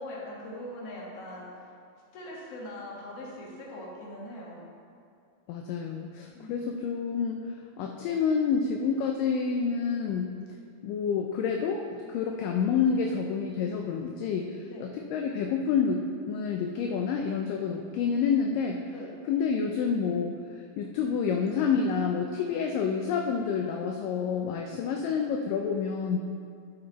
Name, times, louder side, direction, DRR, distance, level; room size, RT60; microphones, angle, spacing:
voice 1, 0.0-1.5 2.1-4.6 6.3-6.9 14.7-14.9 18.9-19.1, left 1 dB, 50° left, -4 dB, 2.2 m, -41 dB
voice 2, 5.5-10.3 10.8-18.8 19.3-20.3 20.8-26.2, left 6 dB, 80° left, 2 dB, 2.1 m, -28 dB
9.4 x 7.8 x 4.0 m, 2.3 s
omnidirectional pair, 4.2 m